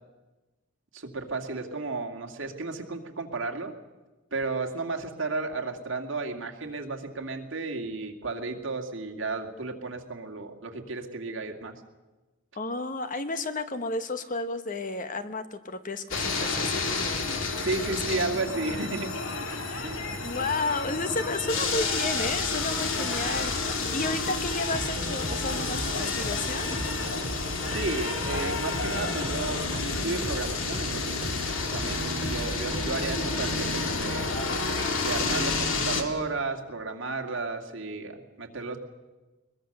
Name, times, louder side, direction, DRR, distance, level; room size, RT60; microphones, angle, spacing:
voice 1, 0.9-3.7 4.3-11.7 17.6-19.1 19.8-20.0 27.6-31.2 31.7-34.3 35.0-38.8, right 3 dB, 65° right, 3 dB, 2.2 m, -33 dB
voice 2, 12.5-18.0 19.7-19.9 20.2-26.7, left 2 dB, 40° left, 10 dB, 1.1 m, -32 dB
sound 1, 16.1-36.0, left 3 dB, 75° left, 2.2 m, -30 dB
sound 2, 19.3-24.5, equal, 5° right, 7.3 m, -50 dB
sound 3, 24.3-33.5, equal, 25° right, 2.8 m, -37 dB
21.5 x 21.5 x 6.7 m, 1.2 s
head